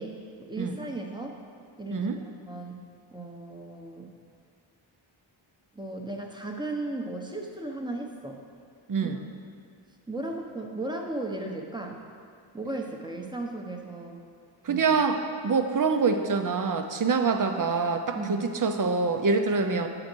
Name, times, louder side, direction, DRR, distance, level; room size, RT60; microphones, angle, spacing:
voice 1, 0.0-1.4 1.8-2.1 2.5-4.1 5.7-8.4 9.0-9.2 10.1-12.0 12.5-14.2 14.7-14.9 18.1-18.5, right 2 dB, 10° right, 1 dB, 0.9 m, -36 dB
voice 2, 8.9-9.2 14.6-19.9, right 4 dB, 40° right, 6 dB, 0.7 m, -25 dB
8.5 x 3.9 x 6.2 m, 2.4 s
cardioid pair, 55°, 48 cm